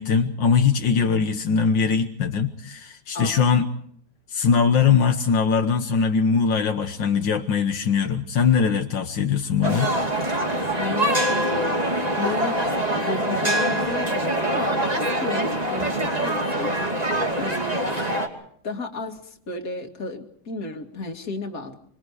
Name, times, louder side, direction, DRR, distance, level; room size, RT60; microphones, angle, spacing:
voice 1, 0.0-3.7 4.3-9.9, left 6 dB, 80° left, 5 dB, 2.0 m, -21 dB
voice 2, 3.1-3.5 10.7-16.9 17.4-17.8 18.6-21.8, left 3 dB, 50° left, 4 dB, 2.6 m, -33 dB
sound 1, 9.6-18.3, right 1 dB, 20° right, 2.7 m, -24 dB
26.0 x 26.0 x 4.9 m, 0.63 s
omnidirectional pair, 1.9 m